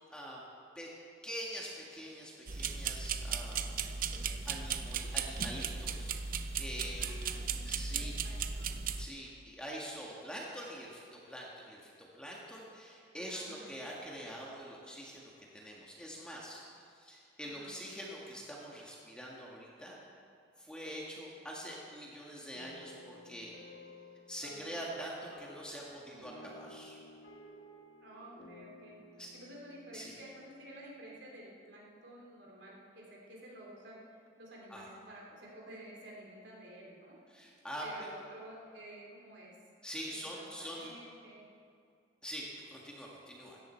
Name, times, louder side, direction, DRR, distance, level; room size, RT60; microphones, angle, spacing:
voice 1, 0.1-0.4 0.7-0.9 1.2-3.7 4.4-8.2 9.0-16.6 16.9-20.0 20.6-23.5 24.3-27.0 29.2-29.3 29.9-30.1 34.7-34.9 37.3-38.1 39.8-40.9 42.2-43.6, equal, 5° left, -4 dB, 1.7 m, -45 dB
sound 1, 2.5-9.1, right 6 dB, 45° right, 0.6 m, -36 dB
voice 2, 3.8-4.4 7.0-8.8 13.3-13.7 17.4-17.8 26.1-26.5 28.0-29.0 29.3-37.2 37.8-39.5 40.1-41.5, right 1 dB, 60° right, -3 dB, 3.2 m, -52 dB
sound 2, 22.5-31.1, equal, 60° left, 1.7 m, -54 dB
16.5 x 13.5 x 4.5 m, 2.4 s
head